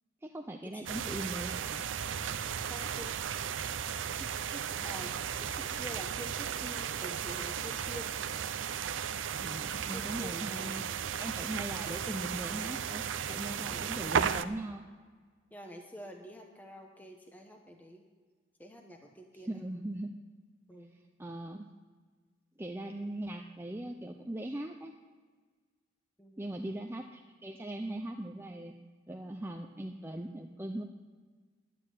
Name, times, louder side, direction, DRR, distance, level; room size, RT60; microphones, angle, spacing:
voice 1, 0.2-1.9 9.4-10.9 11.2-14.8 19.3-20.1 21.2-21.7 22.6-24.9 26.4-28.7 29.1-30.8, right 1 dB, 10° right, 3 dB, 0.5 m, -40 dB
sound 1, 0.9-14.4, right 8 dB, 80° right, 0.5 m, -35 dB
voice 2, 2.6-3.1 4.2-8.2 9.9-11.1 13.7-14.0 15.5-18.0 18.6-19.6 20.7-21.0 26.2-26.6, equal, 10° left, 2 dB, 1.0 m, -48 dB
11.0 x 8.8 x 9.2 m, 1.5 s
head